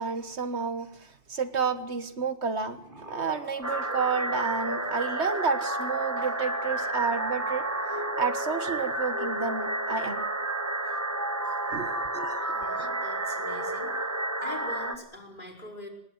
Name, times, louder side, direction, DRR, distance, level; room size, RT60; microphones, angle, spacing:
voice 1, 0.0-2.8 3.1-10.3 11.7-12.5 12.8-12.9, right 5 dB, 70° right, 10 dB, 1.7 m, -31 dB
sound 1, 2.4-5.1 6.6-8.3 9.7-10.2, left 1 dB, 45° right, 6.3 m, -48 dB
sound 2, 3.6-15.0, right 1 dB, 15° right, 1.5 m, -31 dB
voice 2, 12.4-14.1 14.4-15.9, left 1 dB, 45° left, 1 dB, 5.1 m, -44 dB
25.5 x 19.0 x 7.9 m, 0.74 s
omnidirectional pair, 1.2 m